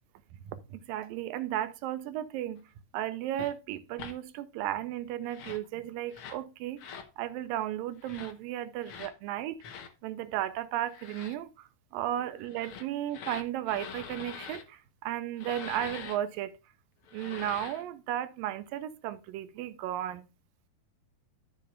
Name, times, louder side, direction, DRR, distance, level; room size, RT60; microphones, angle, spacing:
voice 1, 0.5-2.6 2.9-9.6 10.0-16.6 17.1-20.3, right 12 dB, 80° right, 2.3 m, -35 dB
sound 1, 3.4-3.5 4.0-4.2 5.2-5.7 6.1-6.4 6.8-7.1 8.0-8.3 8.8-9.1 9.6-9.9 10.9-11.4 12.5-14.6 15.4-16.2 17.1-17.9, left 7 dB, 85° left, 1.1 m, -44 dB
13.0 x 6.9 x 2.4 m
omnidirectional pair, 4.2 m